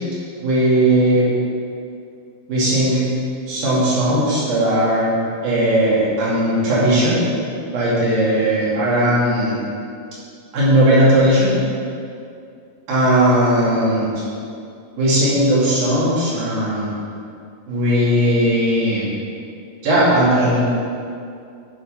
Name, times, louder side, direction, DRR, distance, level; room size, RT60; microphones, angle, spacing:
voice 1, 0.4-1.3 2.5-3.0 3.5-5.1 5.4-7.2 7.7-9.6 10.5-11.5 12.9-14.1 15.0-16.9 17.7-19.1 19.8-20.6, right 1 dB, 65° right, -8 dB, 4.2 m, -17 dB
11.0 x 4.4 x 5.7 m, 2.4 s
omnidirectional pair, 4.7 m